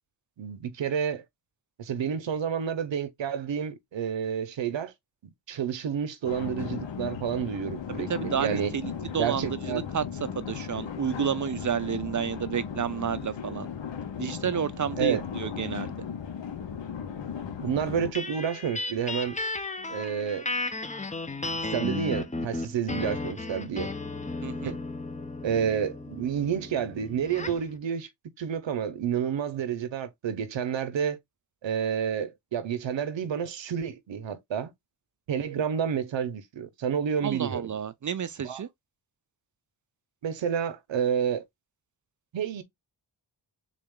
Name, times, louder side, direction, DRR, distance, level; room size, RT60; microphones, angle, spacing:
voice 1, 0.4-1.2 1.8-4.9 5.5-8.7 9.2-9.8 15.0-15.2 17.6-19.4 19.9-20.5 21.7-23.9 24.6-24.8 25.4-28.1 28.4-31.2 31.6-34.7 35.3-37.7 38.4-38.6 40.2-41.4 42.3-42.6, right 8 dB, 75° right, 0.8 m, -29 dB
sound 1, 6.2-18.1, left 7 dB, 75° left, 1.0 m, -36 dB
voice 2, 7.9-10.0 10.4-13.7 14.2-15.9 24.4-24.8 37.2-38.7, right 8 dB, 45° right, 0.5 m, -31 dB
sound 2, 18.1-27.7, left 3 dB, 15° left, 0.6 m, -34 dB
3.9 x 2.4 x 3.6 m
cardioid pair, 60°, 45 cm